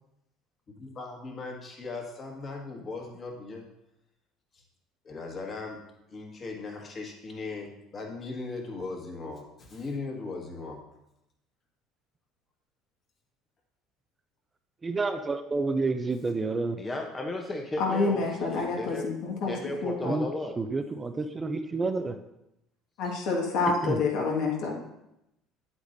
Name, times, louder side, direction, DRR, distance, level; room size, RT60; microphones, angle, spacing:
voice 1, 0.7-3.7 4.5-4.6 5.0-5.8 6.1-10.8, left 3 dB, 35° left, 1 dB, 1.8 m, -38 dB
voice 2, 14.8-16.8 20.1-20.3 20.6-22.2 23.8-24.0, right 3 dB, 20° right, 8 dB, 0.5 m, -29 dB
voice 3, 16.8-19.1 19.5-20.6, left 2 dB, 15° left, 1 dB, 0.8 m, -34 dB
voice 4, 17.8-19.5 19.8-20.1 23.0-24.8, left 4 dB, 70° left, -1 dB, 1.8 m, -28 dB
8.4 x 8.0 x 2.7 m, 0.86 s
supercardioid pair, 110°, 0 cm